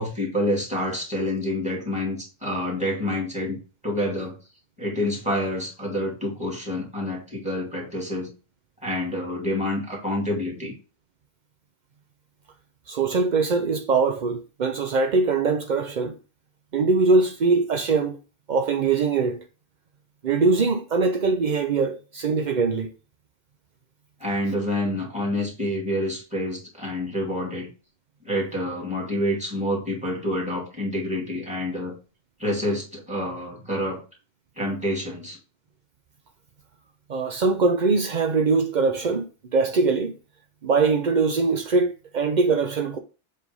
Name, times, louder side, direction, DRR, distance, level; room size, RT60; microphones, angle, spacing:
voice 1, 0.0-4.4 4.8-8.3 8.8-10.8 24.2-27.7 28.2-32.0 32.4-34.0 34.6-35.4, left 1 dB, 5° right, 2.4 m, -28 dB
voice 2, 12.9-16.2 16.7-18.2 18.5-19.4 20.2-22.9 37.1-40.2 40.6-43.0, right 4 dB, 65° right, 0.4 m, -22 dB
7.6 x 3.5 x 5.3 m
omnidirectional pair, 1.6 m